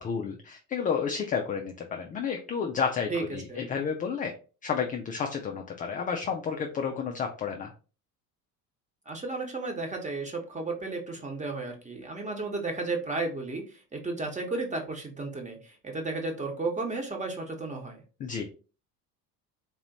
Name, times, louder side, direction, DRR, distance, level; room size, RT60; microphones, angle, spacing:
voice 1, 0.0-4.3 4.6-7.7 18.2-18.4, left 6 dB, 20° left, 3 dB, 0.3 m, -31 dB
voice 2, 9.0-18.0, right 3 dB, 15° right, 2 dB, 1.1 m, -33 dB
3.8 x 2.9 x 2.8 m, 0.35 s
hypercardioid pair, 70°, 49 cm